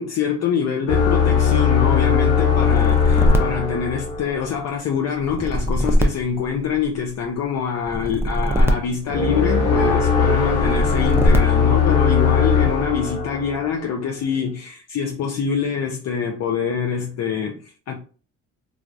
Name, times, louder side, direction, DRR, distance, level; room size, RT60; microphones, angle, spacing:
voice 1, 0.0-18.0, left 7 dB, 60° left, 0.5 m, -25 dB
sound 1, 0.9-4.6 9.1-13.9, left 6 dB, 90° left, 1.1 m, -19 dB
sound 2, 2.5-4.5 5.2-7.1 7.8-9.8 10.5-11.8, equal, 10° right, 0.4 m, -22 dB
3.2 x 2.4 x 2.5 m
cardioid pair, 90°, 30 cm